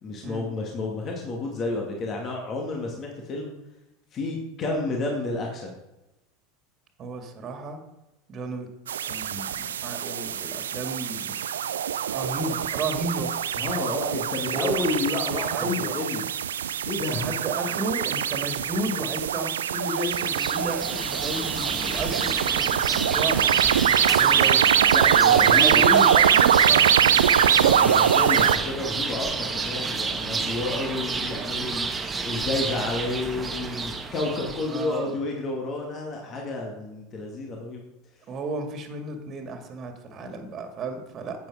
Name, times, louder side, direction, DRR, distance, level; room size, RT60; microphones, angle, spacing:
voice 1, 0.0-3.5 4.1-5.8 13.6-16.2 16.8-17.3 24.9-25.9 27.6-37.8, left 2 dB, 35° left, 0 dB, 2.3 m, -30 dB
voice 2, 7.0-7.8 8.3-8.7 9.0-11.3 12.1-13.3 14.5-15.0 15.5-16.0 17.1-22.5 22.8-23.6 24.1-24.7 25.3-27.5 30.1-30.5 34.7-35.1 38.3-41.5, right 2 dB, 35° right, 6 dB, 2.2 m, -33 dB
sound 1, 8.9-28.6, right 9 dB, 70° right, 0.5 m, -23 dB
sound 2, 19.9-35.0, right 4 dB, 20° right, 1.4 m, -30 dB
12.0 x 8.8 x 5.0 m, 0.93 s
figure-of-eight pair, 75°, 0 cm